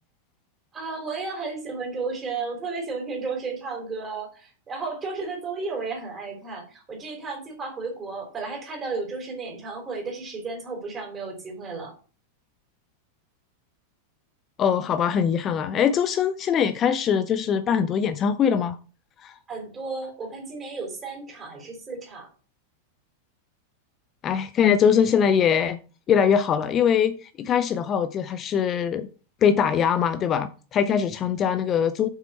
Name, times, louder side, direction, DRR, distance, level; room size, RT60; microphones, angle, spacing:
voice 1, 0.7-11.9 19.5-22.3, right 4 dB, 20° right, 3.4 m, -33 dB
voice 2, 14.6-18.8 19.2-19.4 24.2-25.8 26.1-29.1 29.4-32.1, left 8 dB, 30° left, 0.5 m, -22 dB
7.5 x 6.0 x 4.2 m
figure-of-eight pair, 90°, 0 cm